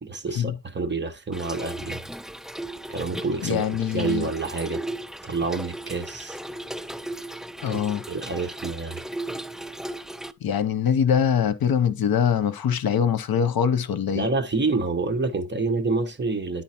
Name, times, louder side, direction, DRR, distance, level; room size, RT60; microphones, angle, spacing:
voice 1, 0.0-2.0 2.9-3.7 3.9-4.8 5.2-6.4 7.7-7.8 8.1-9.0 14.1-16.6, right 3 dB, 30° right, 1.1 m, -28 dB
Trickle dribble / Fill (with liquid), 1.3-10.3, right 1 dB, ahead, 0.5 m, -36 dB
voice 2, 3.4-4.3 7.6-8.0 10.4-14.3, left 8 dB, 75° left, 0.9 m, -23 dB
10.5 x 3.9 x 4.3 m
wide cardioid pair, 115°, 36 cm